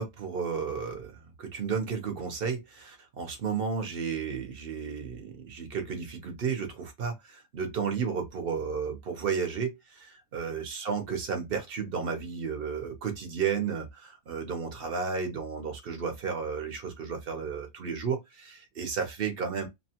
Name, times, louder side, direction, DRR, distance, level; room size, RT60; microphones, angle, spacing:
voice 1, 0.0-19.7, right 6 dB, 50° right, 0.7 m, -33 dB
2.9 x 2.2 x 2.8 m
omnidirectional pair, 1.6 m